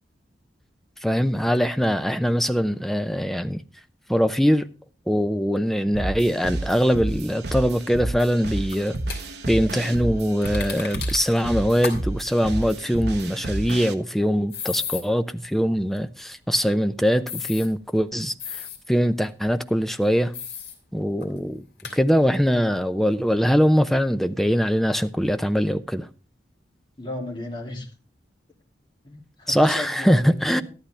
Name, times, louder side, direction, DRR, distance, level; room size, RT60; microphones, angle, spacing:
voice 1, 1.0-3.6 4.1-4.7 5.1-8.9 9.5-20.3 20.9-21.6 21.9-26.1 29.5-30.6, equal, ahead, 0.6 m, -22 dB
sound 1, 5.9-13.9, right 2 dB, 65° right, 1.1 m, -31 dB
sound 2, 8.7-9.2 10.4-11.4 11.8-12.0 12.3-12.4 14.5-15.0 17.3-17.7 18.4-18.8 20.3-20.8 21.2-21.3 21.8-22.0, left 6 dB, 65° left, 2.9 m, -33 dB
voice 2, 27.0-27.9 29.0-30.6, left 1 dB, 25° left, 3.0 m, -35 dB
13.0 x 11.5 x 3.3 m
head